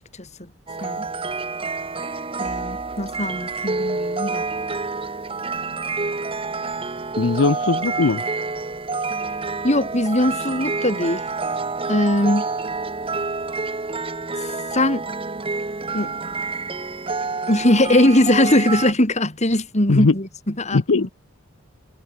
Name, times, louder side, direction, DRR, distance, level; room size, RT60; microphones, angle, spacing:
voice 1, 0.2-0.5 0.8-1.1 2.4-4.5 9.6-11.2 11.9-12.5 14.4-15.1 15.9-16.1 17.5-21.1, left 1 dB, 35° left, 4.2 m, -20 dB
sound 1, 0.7-18.9, right 3 dB, 25° right, 1.4 m, -28 dB
voice 2, 7.2-8.2 19.9-20.1 20.7-21.1, left 3 dB, 70° left, 0.7 m, -19 dB
head